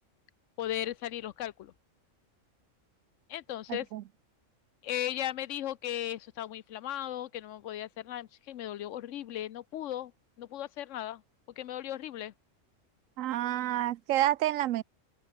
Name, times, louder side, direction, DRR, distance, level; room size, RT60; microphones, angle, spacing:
voice 1, 0.6-1.7 3.3-3.9 4.8-10.1 10.4-11.2 11.6-12.3, left 12 dB, 75° left, 1.0 m, -36 dB
voice 2, 3.7-4.0 13.2-14.8, right 13 dB, 85° right, 1.0 m, -29 dB
open air
omnidirectional pair, 1.3 m